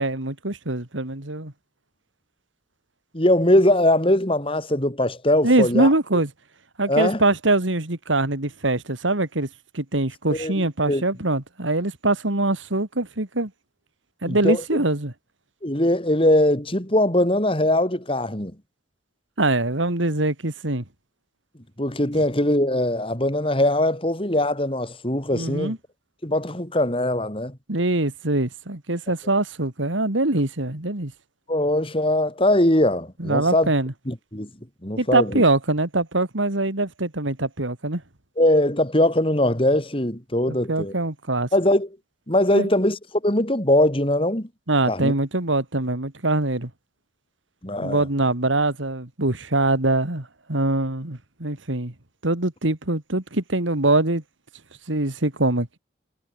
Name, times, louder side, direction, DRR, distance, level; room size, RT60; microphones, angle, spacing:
voice 1, 0.0-1.5 5.4-6.3 6.8-9.5 9.7-13.5 14.2-15.1 19.4-20.8 25.3-25.8 27.7-31.1 33.2-33.9 35.0-38.0 40.5-41.5 42.5-42.7 44.7-46.7 47.8-51.9 52.2-54.2 54.9-55.7, right 2 dB, 90° right, 2.9 m, -23 dB
voice 2, 3.1-5.9 6.9-7.2 10.3-11.0 14.3-14.6 15.6-18.5 21.8-25.7 26.2-27.6 31.5-33.7 34.1-34.5 34.8-35.4 38.4-40.9 41.5-41.9 42.3-44.5 44.9-45.1 47.6-48.0, left 1 dB, 30° left, 4.0 m, -21 dB
head